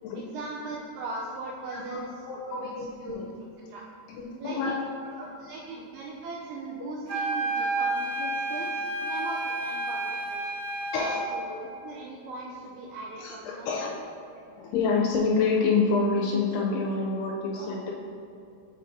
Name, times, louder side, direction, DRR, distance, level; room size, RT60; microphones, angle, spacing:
voice 1, 0.2-2.1 2.4-2.6 3.0-3.2 3.7-3.8 4.4-4.7 5.3-10.5 11.3-13.9, right 2 dB, 85° right, -3 dB, 2.2 m, -39 dB
voice 2, 1.7-3.3 4.1-4.8 5.5-5.6 8.8-8.9 10.9-11.2 13.2-13.9 14.5-17.9, left 4 dB, 85° left, -2 dB, 2.4 m, -28 dB
sound 1, 7.1-11.3, right 2 dB, 55° right, 2.0 m, -30 dB
6.7 x 5.7 x 2.6 m, 2.6 s
omnidirectional pair, 5.0 m